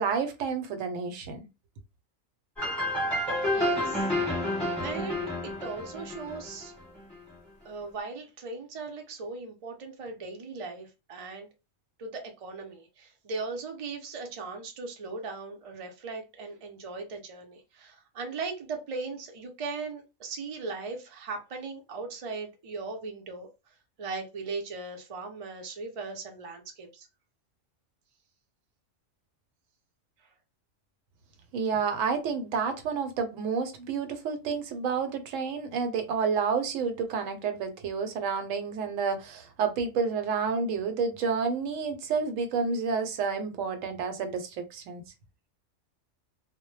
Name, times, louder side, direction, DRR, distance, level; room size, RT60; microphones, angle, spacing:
voice 1, 0.0-1.4 31.5-45.0, right 5 dB, 80° right, 0.9 m, -30 dB
sound 1, 2.6-7.2, left 1 dB, ahead, 0.9 m, -30 dB
voice 2, 3.3-6.7 7.6-11.5 12.0-23.5 24.0-27.1, right 4 dB, 50° right, 0.4 m, -38 dB
2.1 x 2.0 x 3.1 m
omnidirectional pair, 1.3 m